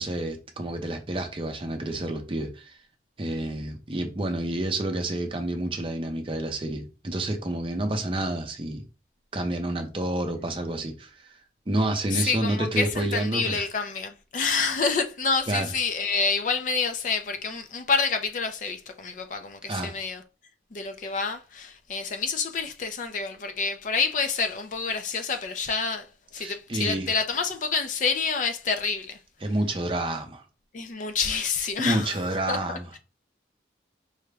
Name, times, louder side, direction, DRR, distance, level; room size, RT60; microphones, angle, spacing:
voice 1, 0.0-2.8 3.2-8.8 9.3-11.4 11.7-13.7 15.5-15.7 19.7-19.9 26.4-27.1 29.4-30.4 31.8-33.0, right 1 dB, 30° right, 0.6 m, -29 dB
voice 2, 12.1-20.2 20.7-29.2 30.7-33.0, left 5 dB, 45° left, 0.4 m, -28 dB
4.8 x 2.1 x 3.3 m
head